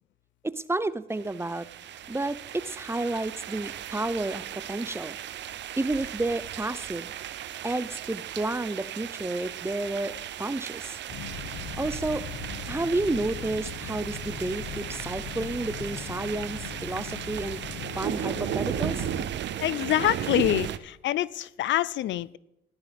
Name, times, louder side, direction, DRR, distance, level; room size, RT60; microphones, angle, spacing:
voice 1, 0.4-1.7 2.1-5.2 5.8-7.1 7.6-10.1 10.4-11.0 11.8-12.2 12.7-17.6 18.0-19.0, right 2 dB, 10° right, 16 dB, 0.6 m, -31 dB
sound 1, 1.1-20.8, right 11 dB, 65° right, 0.7 m, -36 dB
sound 2, 11.1-19.3, left 6 dB, 85° left, 1.4 m, -39 dB
voice 2, 19.6-22.4, left 13 dB, 70° left, 21 dB, 0.4 m, -26 dB
15.0 x 12.0 x 3.5 m, 0.87 s
cardioid pair, 90°, 20 cm